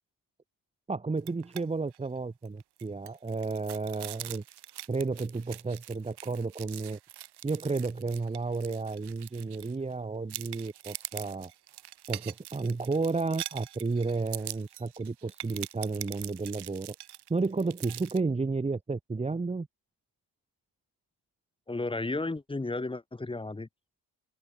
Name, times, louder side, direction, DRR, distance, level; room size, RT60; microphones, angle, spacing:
voice 1, 0.9-4.4 4.9-7.0 7.4-11.5 12.1-17.0 17.3-19.7, right 3 dB, 15° right, 1.8 m, -32 dB
sound 1, 1.2-1.6 1.9-2.1 2.4-9.9 10.3-18.2, right 13 dB, 65° right, 1.9 m, -43 dB
voice 2, 21.7-23.7, left 2 dB, 10° left, 3.2 m, -33 dB
cardioid pair, 165°, 43 cm